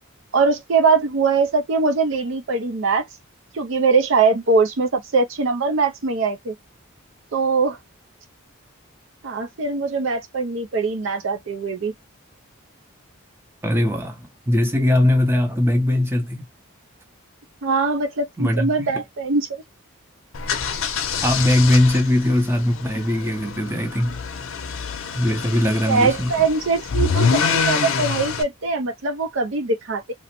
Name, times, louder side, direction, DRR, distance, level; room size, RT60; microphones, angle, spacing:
voice 1, 0.3-3.1 3.5-6.5 7.3-7.8 9.2-11.9 17.6-19.6 25.9-30.1, right 4 dB, 60° right, 0.5 m, -21 dB
voice 2, 13.6-16.4 18.4-19.0 21.2-24.2 25.1-26.3, left 1 dB, 10° right, 0.6 m, -20 dB
sound 1, 20.3-28.4, left 5 dB, 75° left, 0.6 m, -26 dB
3.0 x 2.0 x 2.9 m
head